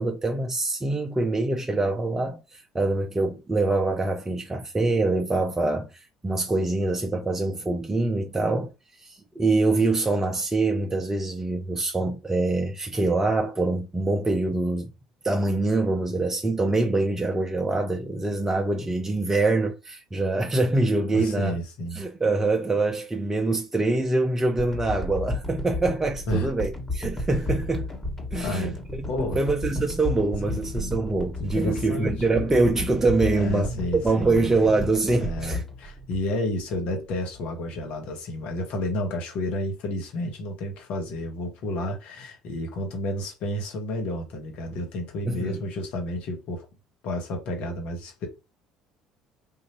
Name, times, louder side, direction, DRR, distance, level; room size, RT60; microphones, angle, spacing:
voice 1, 0.0-8.7 9.0-14.9 15.2-21.6 22.0-27.9 28.3-33.7 34.0-35.6 45.2-45.6, right 2 dB, 15° right, 0.6 m, -25 dB
voice 2, 21.1-22.0 26.3-26.5 28.3-29.4 30.4-30.9 31.4-32.1 33.3-34.5 35.2-46.6 47.0-48.3, left 1 dB, 60° left, 1.3 m, -31 dB
sound 1, 24.6-36.8 37.3-37.4, left 1 dB, 15° left, 1.6 m, -33 dB
3.8 x 2.6 x 3.0 m
hypercardioid pair, 60°, 2 cm